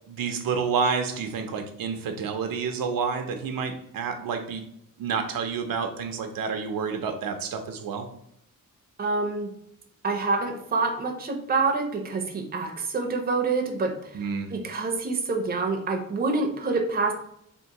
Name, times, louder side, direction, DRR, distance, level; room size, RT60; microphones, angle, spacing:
voice 1, 0.1-4.6 5.0-8.1 14.1-14.5, right 5 dB, 80° right, 6 dB, 0.5 m, -29 dB
voice 2, 9.0-9.5 10.0-14.2 14.5-17.1, right 3 dB, 30° right, 3 dB, 0.5 m, -27 dB
3.5 x 2.4 x 2.8 m, 0.73 s
wide cardioid pair, 140°, 34 cm